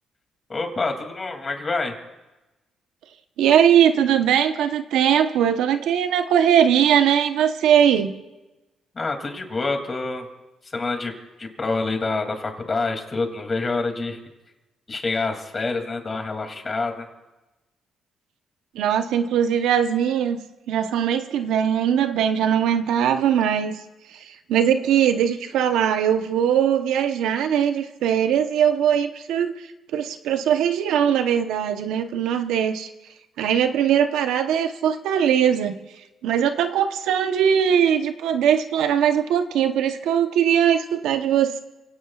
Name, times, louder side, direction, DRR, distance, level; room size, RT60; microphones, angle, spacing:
voice 1, 0.5-2.0 8.9-10.3 10.7-11.1 11.4-14.2 14.9-17.1, left 3 dB, 30° left, 4 dB, 2.6 m, -27 dB
voice 2, 3.4-8.1 18.7-20.4 20.7-23.8 24.1-29.7 29.9-32.9 33.4-35.8 36.2-41.6, right 9 dB, 85° right, 8 dB, 0.9 m, -20 dB
29.5 x 17.0 x 2.4 m, 1.1 s
cardioid pair, 90°, 0 cm